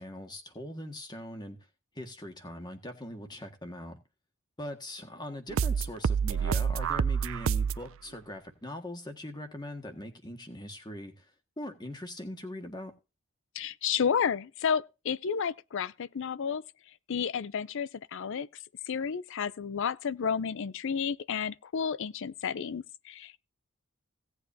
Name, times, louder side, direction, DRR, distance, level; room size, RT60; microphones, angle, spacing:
voice 1, 0.0-1.6 2.0-4.0 4.6-11.3 11.6-12.9, left 1 dB, 20° left, 1.8 m, -41 dB
sound 1, 5.5-7.9, right 6 dB, 65° right, 0.5 m, -28 dB
voice 2, 13.6-16.6 17.1-18.5 18.9-23.4, left 7 dB, 60° left, 0.5 m, -31 dB
17.0 x 8.1 x 2.7 m
head